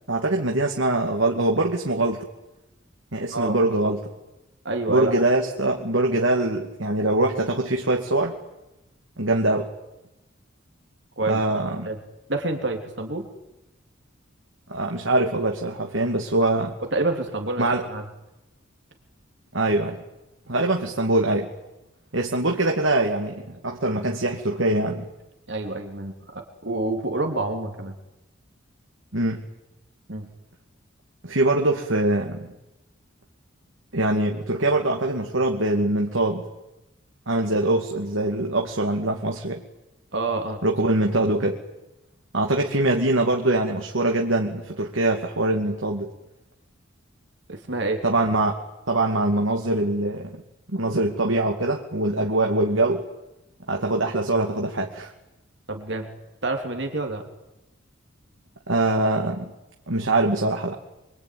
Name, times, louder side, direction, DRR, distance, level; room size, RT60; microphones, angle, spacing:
voice 1, 0.1-2.3 3.1-4.1 4.9-8.3 9.2-9.7 11.3-11.9 14.7-16.7 17.6-17.9 19.5-20.0 20.5-21.5 22.1-25.1 29.1-29.4 31.2-32.5 33.9-36.4 37.3-39.6 40.6-41.6 42.3-46.1 48.0-48.5 48.9-50.4 50.7-53.0 53.7-55.1 58.7-59.5 59.9-60.8, right 2 dB, 80° right, 2 dB, 2.5 m, -23 dB
voice 2, 4.6-5.2 11.2-11.4 11.8-12.0 12.3-13.3 16.9-18.0 25.5-27.9 30.1-30.3 40.1-40.6 47.5-48.0 55.7-56.1 56.4-57.2, right 2 dB, 60° right, 4 dB, 3.4 m, -27 dB
25.5 x 24.0 x 9.6 m, 0.95 s
head